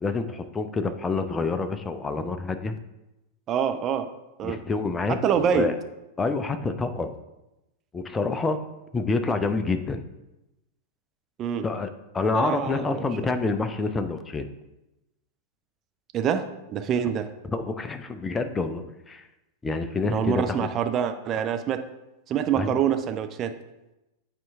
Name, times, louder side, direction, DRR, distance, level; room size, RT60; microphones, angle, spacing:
voice 1, 0.0-2.8 4.4-5.7 6.2-7.1 7.9-8.6 8.9-10.0 11.6-11.9 12.1-14.4 17.5-19.2 19.6-20.7 22.6-22.8, left 3 dB, 15° left, 8 dB, 0.5 m, -27 dB
voice 2, 3.5-4.1 4.4-4.6 5.1-5.7 11.4-11.6 12.3-13.4 16.1-17.3 20.1-21.8 22.3-23.5, right 8 dB, 30° right, 8 dB, 0.5 m, -26 dB
8.7 x 4.4 x 3.5 m, 0.98 s
figure-of-eight pair, 90°, 0 cm